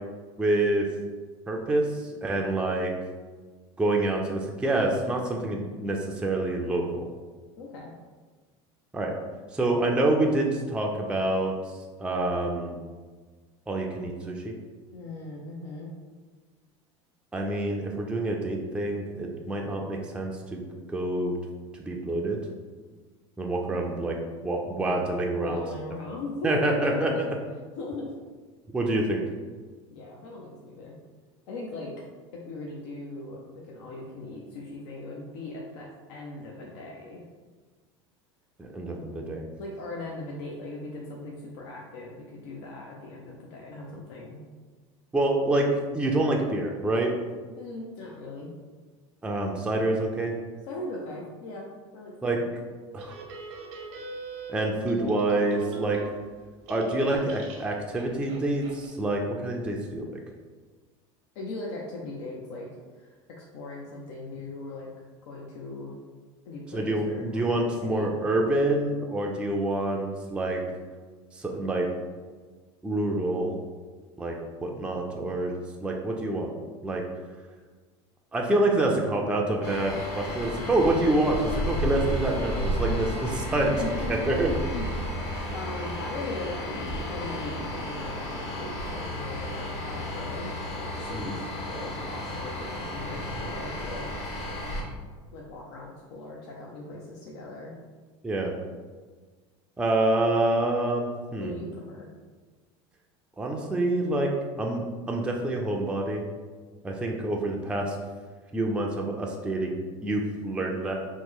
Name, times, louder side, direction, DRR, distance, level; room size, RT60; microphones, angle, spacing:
voice 1, 0.4-0.9 1.5-2.9 3.8-7.1 8.9-9.1 9.5-11.5 12.0-12.8 13.7-14.5 17.3-20.6 20.9-21.4 21.7-22.4 23.4-24.2 24.4-25.6 26.4-27.3 28.7-29.2 38.6-39.4 45.1-45.7 45.9-47.1 49.2-50.3 52.2-52.4 52.9-53.2 54.5-56.0 56.7-60.1 66.7-70.6 71.3-71.9 72.8-73.6 74.2-74.3 74.6-75.6 75.8-76.5 76.8-77.0 78.3-83.1 83.5-83.7 84.1-84.5 91.1-91.3 98.2-98.5 99.8-101.5 103.4-104.3 104.6-106.2 106.8-108.0 108.5-110.9, right 2 dB, 5° right, 0 dB, 0.4 m, -27 dB
voice 2, 7.6-7.9 14.9-15.9 25.4-27.2 27.7-28.1 29.9-31.0 31.5-31.9 32.3-37.2 39.6-44.4 47.5-48.5 50.7-51.7 51.9-52.5 61.4-62.7 62.9-64.9 65.3-66.0 66.5-68.1 82.9-83.0 83.6-84.2 84.5-85.2 85.5-86.6 87.1-94.6 95.3-97.7 101.4-102.1, left 2 dB, 70° left, -2 dB, 0.6 m, -39 dB
sound 1, 53.0-56.4 56.7-58.9, right 2 dB, 80° right, 0.8 m, -40 dB
sound 2, 79.6-94.8, equal, 45° left, 0.9 m, -33 dB
3.0 x 2.1 x 3.6 m, 1.4 s
supercardioid pair, 100°, 15 cm